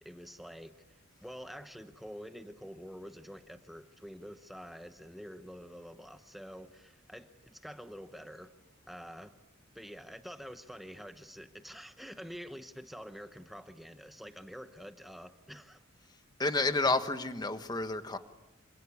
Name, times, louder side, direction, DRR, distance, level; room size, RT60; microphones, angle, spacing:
voice 1, 0.0-8.5 8.9-9.3 9.7-15.8, equal, ahead, 0.9 m, -47 dB
voice 2, 16.4-18.2, left 3 dB, 20° left, 1.2 m, -30 dB
27.5 x 25.5 x 8.4 m
head